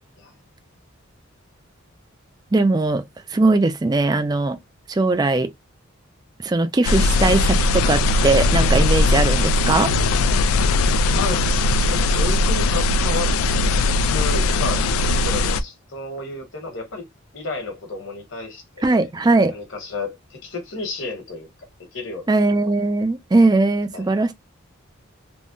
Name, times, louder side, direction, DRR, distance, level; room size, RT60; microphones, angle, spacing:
voice 1, 2.5-3.0 3.3-4.6 4.9-5.5 6.4-9.9 18.8-19.5 22.3-24.3, right 2 dB, 20° right, 0.3 m, -19 dB
sound 1, 6.8-15.6, left 2 dB, 85° left, 0.3 m, -19 dB
voice 2, 11.0-13.3 14.1-14.8 15.2-17.0 17.3-19.0 19.5-21.5 21.9-22.3 23.9-24.1, left 3 dB, 65° left, 1.3 m, -31 dB
3.5 x 2.2 x 2.5 m
head